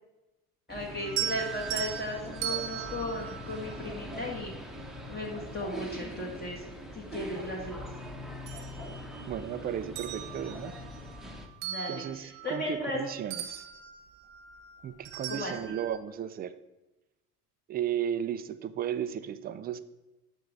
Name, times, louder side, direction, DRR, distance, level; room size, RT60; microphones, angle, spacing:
voice 1, 0.7-4.5 5.1-6.7 6.9-7.9 11.6-13.0 15.3-15.5, left 1 dB, 20° left, -2 dB, 1.5 m, -36 dB
sound 1, 0.7-11.5, equal, ahead, 0.9 m, -42 dB
sound 2, 1.0-4.4 6.0-6.1 6.6-7.9 8.2-9.5 9.8-13.0 13.3-16.0, right 11 dB, 65° right, 0.8 m, -39 dB
sound 3, 2.2-2.7 3.9-4.3 5.4-5.8 6.9-7.6 8.5-9.1 9.3-9.4 10.3-10.7, equal, 65° left, 2.7 m, -47 dB
voice 2, 9.3-10.7 11.9-13.6 14.8-16.6 17.7-19.8, right 9 dB, 25° right, 13 dB, 0.3 m, -34 dB
6.5 x 5.3 x 4.7 m, 1.0 s
hypercardioid pair, 70°, 45 cm